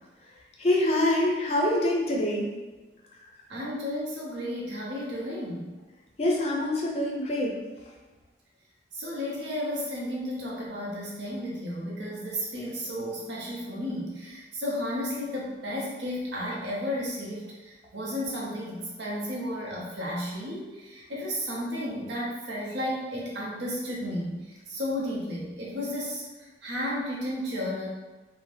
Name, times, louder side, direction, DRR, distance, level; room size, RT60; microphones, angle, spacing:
voice 1, 0.6-2.5 6.2-7.5, left 1 dB, 35° left, -1 dB, 0.4 m, -25 dB
voice 2, 3.5-5.7 8.9-24.4 24.7-26.2 26.6-27.9, left 1 dB, 80° right, -4 dB, 0.8 m, -33 dB
2.7 x 2.1 x 3.2 m, 1.2 s
head